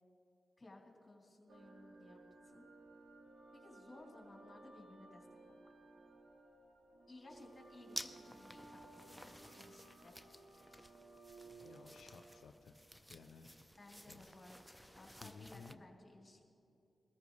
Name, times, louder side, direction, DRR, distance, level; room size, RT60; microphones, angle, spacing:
voice 1, 0.6-2.7 3.5-5.7 7.1-10.2 13.7-14.6 14.9-16.4, left 2 dB, 30° left, -2 dB, 3.2 m, -59 dB
sound 1, 1.5-12.5, right 3 dB, 80° right, 2.0 m, -59 dB
sound 2, 7.3-15.7, equal, ahead, 0.6 m, -53 dB
voice 2, 11.5-12.8 13.1-13.5 14.1-14.4 15.2-15.8, left 5 dB, 85° left, 5 dB, 0.5 m, -57 dB
21.5 x 14.0 x 3.2 m, 2.6 s
cardioid pair, 50°, 0 cm